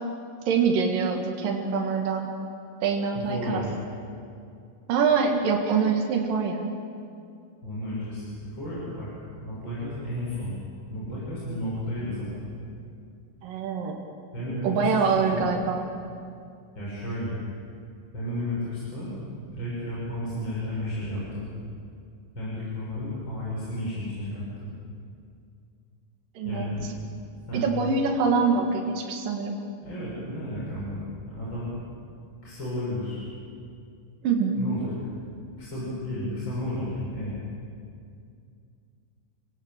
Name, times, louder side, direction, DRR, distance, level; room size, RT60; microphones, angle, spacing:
voice 1, 0.5-2.3 2.8-3.6 4.9-6.6 13.4-14.0 14.6-15.8 26.4-26.7 27.5-29.6 34.2-34.6, right 5 dB, 75° right, 1 dB, 3.6 m, -24 dB
voice 2, 3.3-3.7 7.6-9.1 9.4-10.5 10.9-12.5 14.3-15.5 16.8-17.4 18.1-19.1 19.5-21.5 22.3-24.7 26.4-26.9 27.5-27.7 29.8-31.7 32.4-33.3 34.6-34.9 35.6-37.4, left 1 dB, 30° left, -8 dB, 7.2 m, -32 dB
29.0 x 17.0 x 9.0 m, 2.4 s
omnidirectional pair, 4.0 m